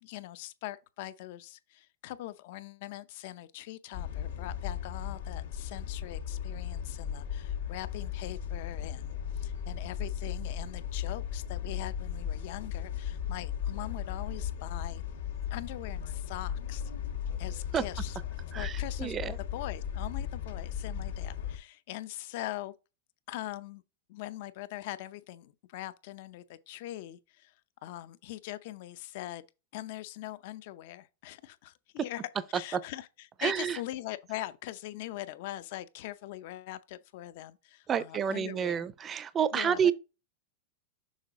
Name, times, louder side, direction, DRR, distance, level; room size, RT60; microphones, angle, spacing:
voice 1, 0.0-15.0 15.5-16.9 17.4-18.2 18.5-22.7 23.3-23.8 24.1-27.5 27.8-29.4 29.7-32.2 32.5-33.1 33.4-38.8 39.5-39.9, left 15 dB, 60° left, 0.6 m, -42 dB
sound 1, 3.9-21.6, left 9 dB, 80° left, 1.5 m, -36 dB
voice 2, 18.5-19.4 32.7-32.8 33.4-33.8 37.9-39.9, right 8 dB, 25° right, 0.5 m, -29 dB
6.5 x 3.9 x 3.7 m
hypercardioid pair, 115°, 0 cm